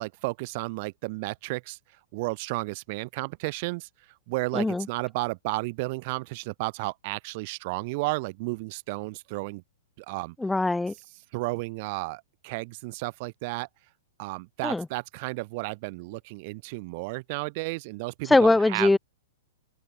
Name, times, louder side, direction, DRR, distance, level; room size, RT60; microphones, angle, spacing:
voice 1, 0.0-1.8 2.1-3.9 4.3-9.6 10.0-10.4 11.3-13.7 14.2-18.9, right 25 dB, 45° right, 0.6 m, -33 dB
voice 2, 4.5-4.9 10.4-10.9 14.6-14.9 18.3-19.0, left 2 dB, 5° left, 0.4 m, -21 dB
open air
figure-of-eight pair, 105°, 0 cm